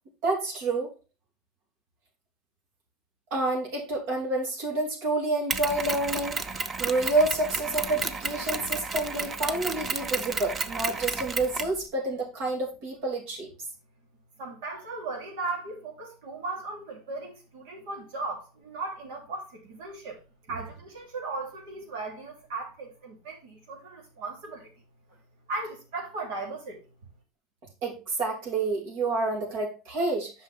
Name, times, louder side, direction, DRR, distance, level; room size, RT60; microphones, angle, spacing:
voice 1, 0.2-0.9 3.3-6.4 6.8-13.5 27.8-30.3, right 2 dB, 65° right, 3.1 m, -28 dB
Mechanisms, 5.5-11.8, right 4 dB, 25° right, 0.6 m, -32 dB
voice 2, 14.4-20.2 20.5-24.7 25.5-26.8, right 3 dB, 80° right, 3.0 m, -37 dB
8.0 x 5.7 x 3.4 m
supercardioid pair, 135°, 0 cm